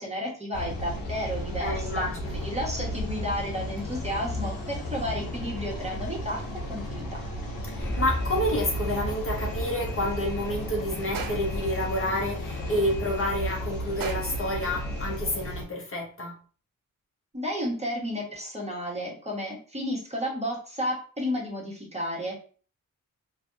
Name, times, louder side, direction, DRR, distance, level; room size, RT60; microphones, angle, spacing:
voice 1, 0.0-6.4 6.7-7.2 17.3-22.4, equal, 20° right, -3 dB, 1.2 m, -32 dB
sound 1, 0.5-15.6, left 1 dB, 75° left, 0.8 m, -34 dB
voice 2, 1.6-2.4 7.7-16.3, left 1 dB, 40° left, -1 dB, 0.9 m, -29 dB
Alarm, 7.8-15.5, equal, 10° left, 0.7 m, -38 dB
sound 2, 11.1-11.7 14.0-14.5, right 5 dB, 75° right, 0.6 m, -37 dB
2.5 x 2.3 x 2.5 m, 0.40 s
cardioid pair, 60°, 34 cm